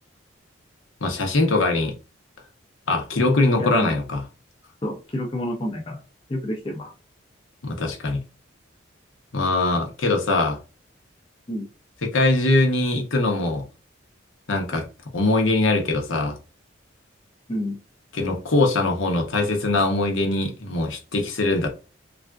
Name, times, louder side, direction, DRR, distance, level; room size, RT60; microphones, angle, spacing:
voice 1, 1.0-1.9 2.9-4.2 7.6-8.2 9.3-10.6 12.0-13.6 14.5-14.9 15.1-16.4 18.1-21.7, left 2 dB, 80° left, 0.8 m, -22 dB
voice 2, 3.6-4.0 4.8-6.0 6.3-6.9 10.0-10.1 11.5-11.7 17.5-17.8, equal, 25° left, 0.5 m, -29 dB
3.4 x 2.4 x 2.3 m
head